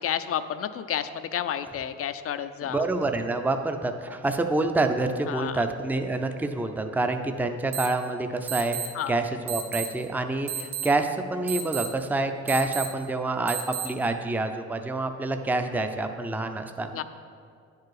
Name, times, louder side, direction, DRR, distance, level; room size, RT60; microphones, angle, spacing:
voice 1, 0.0-2.8 5.3-5.6 8.9-9.2 16.9-17.0, left 9 dB, 50° left, 12 dB, 0.4 m, -31 dB
voice 2, 2.6-17.0, right 2 dB, 5° right, 6 dB, 0.5 m, -27 dB
sound 1, 7.7-7.9 8.5-8.9 9.5-9.9 10.5-10.9 11.5-11.9 12.5-12.9 13.5-13.9, right 9 dB, 45° right, 1.5 m, -31 dB
10.0 x 4.8 x 4.7 m, 2.3 s
cardioid pair, 90°, 30 cm